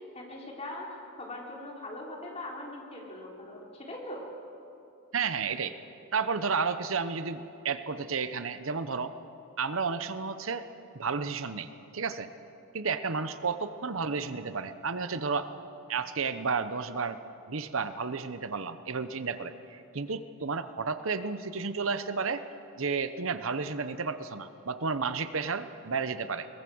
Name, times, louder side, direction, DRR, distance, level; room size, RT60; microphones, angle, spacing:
voice 1, 0.0-4.3, left 1 dB, 30° left, -1 dB, 3.8 m, -41 dB
voice 2, 5.1-5.7 6.1-9.2 9.6-10.7 10.9-12.3 12.7-15.5 15.9-17.2 17.5-22.5 22.8-26.5, right 5 dB, 65° right, 11 dB, 0.9 m, -32 dB
22.0 x 20.5 x 7.8 m, 2.7 s
head